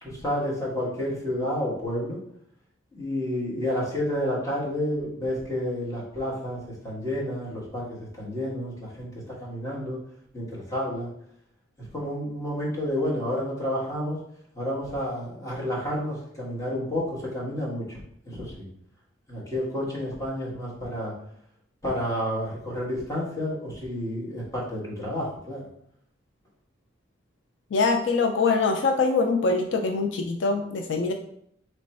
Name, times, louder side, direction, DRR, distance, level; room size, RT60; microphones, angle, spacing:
voice 1, 0.0-2.2 2.9-6.6 6.8-10.0 10.3-11.1 11.9-14.2 14.5-18.0 18.2-18.7 19.3-21.1 21.8-25.6, equal, 15° left, -6 dB, 1.4 m, -30 dB
voice 2, 27.7-31.1, left 4 dB, 70° left, 5 dB, 0.4 m, -23 dB
3.3 x 3.0 x 4.1 m, 0.70 s
head